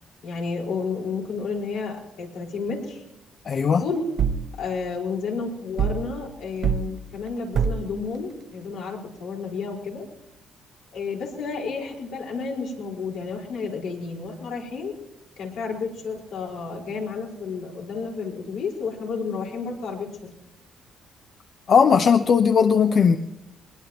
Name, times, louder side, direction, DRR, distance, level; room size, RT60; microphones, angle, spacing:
voice 1, 0.2-3.0 3.8-4.0 4.6-10.1 10.9-14.9 15.4-20.1, left 5 dB, 85° left, -2 dB, 5.0 m, -31 dB
voice 2, 3.5-3.8 21.7-23.2, left 6 dB, 55° left, 7 dB, 0.8 m, -17 dB
Bassy Tire Hit, 4.2-4.5 5.8-6.1 6.6-6.9 7.5-7.9, right 7 dB, 60° right, 0.7 m, -23 dB
21.5 x 21.0 x 3.1 m, 0.87 s
cardioid pair, 90°, 0 cm